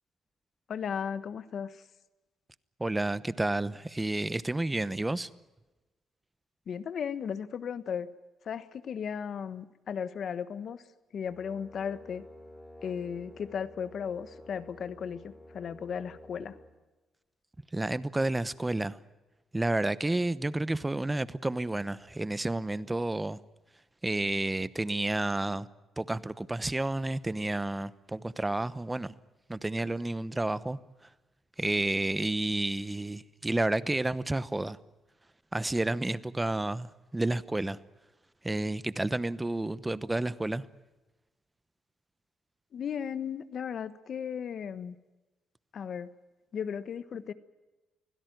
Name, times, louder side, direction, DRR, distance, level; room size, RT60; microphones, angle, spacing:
voice 1, 0.7-1.8 6.7-8.1 8.4-10.8 11.1-12.2 12.8-16.6 42.7-44.9 45.7-46.1 46.5-47.3, left 7 dB, 60° left, 1.3 m, -36 dB
voice 2, 2.8-5.3 17.7-19.0 19.5-23.4 24.0-25.7 26.0-29.1 29.5-30.8 31.6-34.8 35.5-36.9 37.1-37.8 38.4-40.7, right 2 dB, 15° right, 0.9 m, -30 dB
Brass instrument, 11.2-16.7, left 1 dB, 5° left, 4.7 m, -51 dB
25.0 x 16.5 x 9.2 m
cardioid pair, 90°, 0 cm